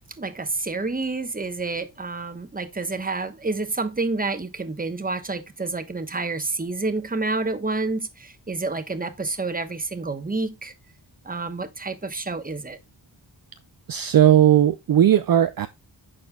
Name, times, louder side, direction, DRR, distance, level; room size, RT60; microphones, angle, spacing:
voice 1, 0.2-10.7 11.2-12.8, right 3 dB, 20° right, 1.0 m, -29 dB
voice 2, 13.9-15.7, right 10 dB, 50° right, 0.5 m, -17 dB
11.0 x 4.3 x 2.2 m
wide cardioid pair, 85°, 44 cm